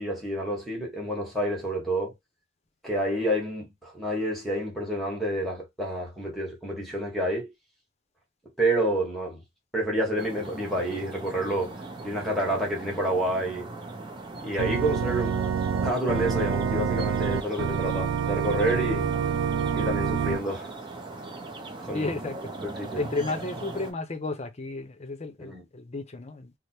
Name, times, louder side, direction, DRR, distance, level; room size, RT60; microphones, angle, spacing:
voice 1, 0.0-2.1 2.8-7.5 8.6-9.4 9.7-13.7 14.4-15.4 15.8-19.1 19.7-20.7 21.8-22.1 22.8-23.1 25.4-25.6, right 1 dB, ahead, 1.1 m, -29 dB
sound 1, 10.2-23.9, right 2 dB, 25° right, 0.6 m, -39 dB
Organ, 14.6-20.4, right 7 dB, 85° right, 0.4 m, -27 dB
voice 2, 21.9-22.4 23.0-26.5, left 3 dB, 30° left, 0.6 m, -33 dB
3.3 x 2.0 x 4.2 m
head